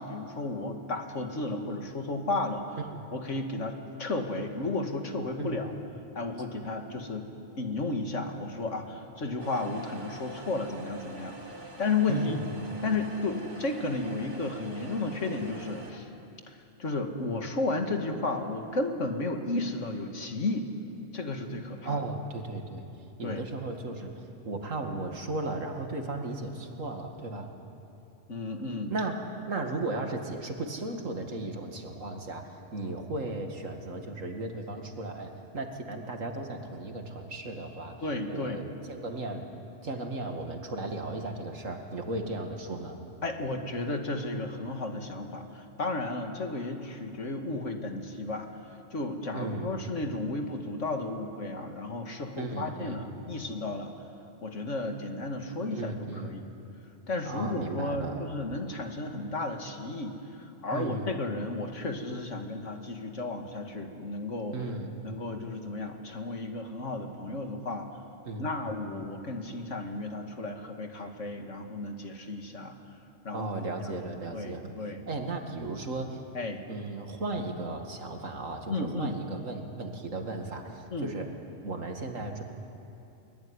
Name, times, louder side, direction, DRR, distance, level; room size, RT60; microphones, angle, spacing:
voice 1, 0.0-2.8 3.1-5.7 6.1-7.3 7.6-11.4 11.8-12.4 12.8-16.1 16.5-20.7 21.1-22.0 23.2-23.4 28.3-28.9 38.0-38.6 43.2-48.5 48.9-53.9 54.4-55.9 56.2-56.5 57.1-64.6 65.0-68.0 68.4-72.8 73.2-73.5 73.8-73.9 74.3-75.0 76.3-76.6 78.7-79.2 80.9-81.1, left 2 dB, 65° left, 4 dB, 2.4 m, -33 dB
sound 1, 9.4-15.9, right 2 dB, 60° right, 2.7 m, -45 dB
voice 2, 12.1-12.5 21.8-22.8 23.2-27.5 28.9-38.0 38.3-39.5 39.8-43.0 49.3-49.8 52.4-53.0 55.7-56.4 57.2-58.3 60.7-61.1 64.5-65.0 68.2-68.5 73.3-74.7 75.1-76.2 76.7-81.3 81.6-82.4, right 2 dB, 75° right, 4 dB, 2.5 m, -35 dB
23.0 x 21.5 x 9.8 m, 2.7 s
omnidirectional pair, 1.4 m